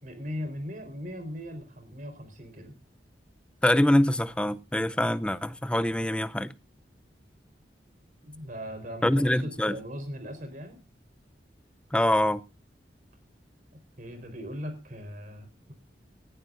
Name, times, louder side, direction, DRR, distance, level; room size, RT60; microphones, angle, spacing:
voice 1, 0.0-2.7 8.2-10.8 14.0-15.7, equal, 50° right, 4.4 m, -39 dB
voice 2, 3.6-6.5 9.0-9.8 11.9-12.4, left 1 dB, 5° left, 0.6 m, -24 dB
18.5 x 15.0 x 2.6 m
head